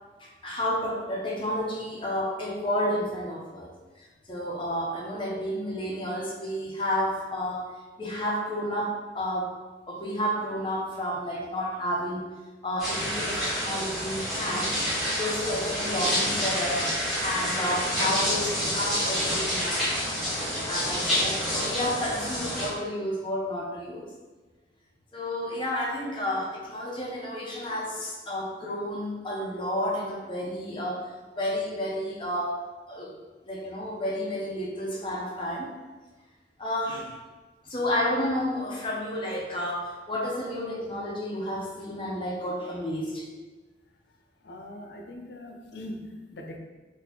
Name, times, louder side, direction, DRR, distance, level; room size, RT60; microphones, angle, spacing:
voice 1, 0.2-3.7 4.0-7.7 8.0-9.5 9.9-12.2 12.6-14.8 15.2-16.9 17.2-20.1 20.7-24.1 25.1-31.1 31.4-33.1 33.4-35.7 36.6-37.1 37.6-43.3, equal, 30° left, -4 dB, 0.7 m, -31 dB
sound 1, 12.8-22.7, equal, ahead, 1.0 m, -28 dB
voice 2, 44.4-46.6, left 1 dB, 70° left, 2 dB, 0.5 m, -41 dB
4.1 x 2.7 x 2.8 m, 1.3 s
head